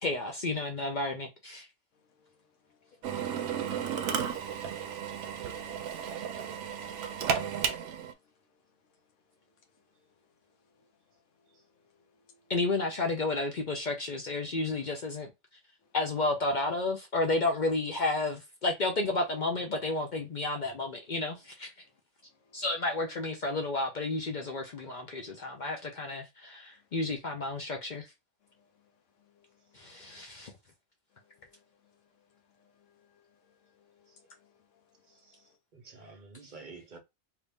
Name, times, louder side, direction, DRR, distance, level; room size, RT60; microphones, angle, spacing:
voice 1, 0.0-1.7 12.5-15.3 15.9-21.7 22.5-28.1 29.7-30.5, left 2 dB, 50° left, 0.6 m, -31 dB
Drill, 3.0-8.1, right 7 dB, 70° right, 0.9 m, -33 dB
voice 2, 5.5-6.0 6.5-7.0 7.6-8.0 10.8-10.9 12.1-12.5 22.4-22.6 25.1-25.6 29.4-29.5 30.1-30.4 31.4-31.5 32.8-33.3 33.9-34.6, left 5 dB, 75° left, 1.1 m, -65 dB
voice 3, 35.1-37.0, right 4 dB, 40° right, 1.0 m, -51 dB
3.0 x 2.6 x 3.4 m
omnidirectional pair, 1.3 m